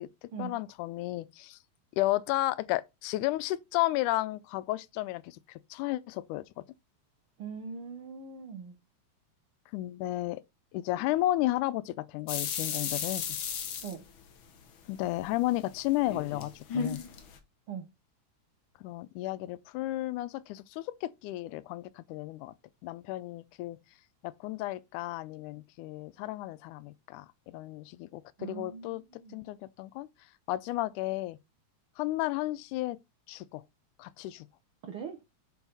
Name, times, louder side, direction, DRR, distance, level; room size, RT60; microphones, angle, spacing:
voice 1, 0.0-1.6 1.9-6.6 9.7-10.4 10.7-13.3 14.9-17.0 18.8-22.5 22.8-23.8 24.2-29.0 29.3-30.1 30.5-31.4 32.0-33.0 33.3-33.6 34.0-34.5, left 16 dB, 90° left, 2.1 m, -33 dB
voice 2, 7.4-8.8 13.8-14.0 17.7-17.9 28.4-29.4 34.9-35.2, right 6 dB, 60° right, 1.5 m, -41 dB
sound 1, 12.3-14.7 15.1-17.4, left 6 dB, 55° left, 1.5 m, -35 dB
7.1 x 5.8 x 4.0 m
omnidirectional pair, 3.5 m